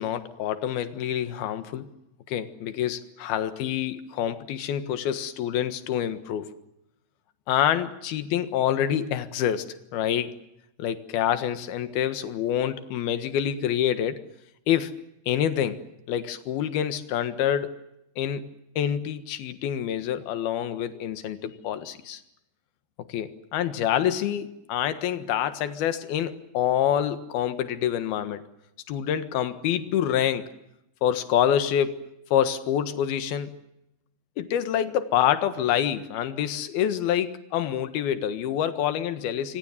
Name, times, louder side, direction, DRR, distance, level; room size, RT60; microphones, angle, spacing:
voice 1, 0.0-1.9 2.3-6.5 7.5-10.3 10.8-14.2 14.7-14.9 15.3-15.8 16.1-17.7 18.2-18.5 18.8-22.2 23.1-28.4 28.9-30.5 31.0-32.0 32.3-33.5 34.4-39.6, left 10 dB, 75° left, 10 dB, 3.3 m, -26 dB
26.0 x 26.0 x 7.3 m, 0.85 s
omnidirectional pair, 4.6 m